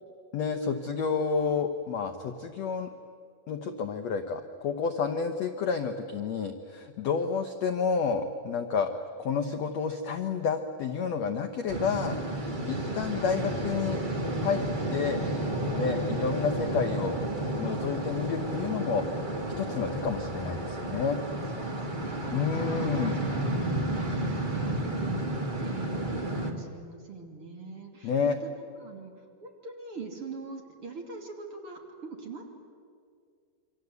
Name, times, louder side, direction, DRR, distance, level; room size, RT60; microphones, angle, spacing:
voice 1, 0.3-2.9 3.5-8.9 9.2-12.2 12.7-14.0 14.4-14.6 14.9-15.2 15.7-17.2 17.6-19.1 19.6-21.2 22.3-23.2 28.0-28.4, left 6 dB, 70° left, 6 dB, 1.7 m, -30 dB
sound 1, 11.7-26.5, right 1 dB, 20° right, 1.4 m, -31 dB
voice 2, 12.7-13.4 21.5-32.5, right 3 dB, 40° right, 2 dB, 3.3 m, -43 dB
27.5 x 25.0 x 8.2 m, 2.2 s
omnidirectional pair, 4.3 m